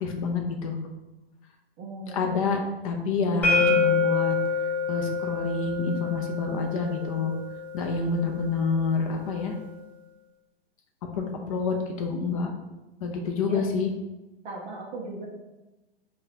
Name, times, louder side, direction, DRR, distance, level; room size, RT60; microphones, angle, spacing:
voice 1, 0.0-0.8 2.1-4.4 4.9-7.3 7.7-9.6 11.1-12.5 13.0-13.9, left 4 dB, 35° left, 3 dB, 0.5 m, -28 dB
voice 2, 1.8-2.5 13.4-13.6 14.4-15.2, right 2 dB, 20° right, -3 dB, 0.4 m, -38 dB
sound 1, 3.4-9.2, left 4 dB, 5° left, 0.9 m, -28 dB
5.5 x 2.3 x 2.8 m, 1.0 s
figure-of-eight pair, 115°, 31 cm